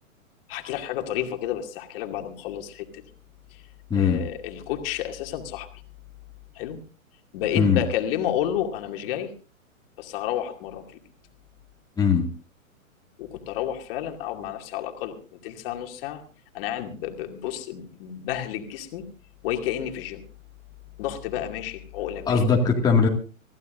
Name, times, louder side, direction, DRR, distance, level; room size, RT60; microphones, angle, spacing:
voice 1, 0.5-3.0 3.5-3.6 3.9-5.7 6.5-6.8 7.3-9.3 10.0-11.0 13.2-16.2 16.5-19.0 19.4-20.2 21.0-22.4, left 11 dB, 40° left, 4 dB, 2.4 m, -31 dB
voice 2, 3.9-4.2 7.6-7.8 12.0-12.3 22.3-23.1, left 5 dB, 10° left, -1 dB, 2.1 m, -20 dB
25.5 x 15.0 x 2.6 m, 0.36 s
hypercardioid pair, 125°, 42 cm